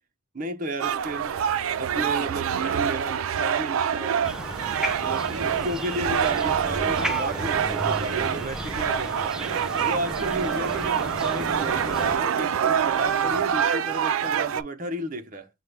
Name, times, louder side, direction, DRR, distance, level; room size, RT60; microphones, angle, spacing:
voice 1, 0.3-1.3 1.8-4.3 5.0-9.4 9.8-15.5, right 1 dB, 40° right, 0.6 m, -33 dB
sound 1, 0.8-14.6, right 8 dB, 85° right, 0.4 m, -26 dB
sound 2, 4.2-12.2, equal, 5° right, 0.4 m, -34 dB
6.5 x 2.2 x 3.2 m
head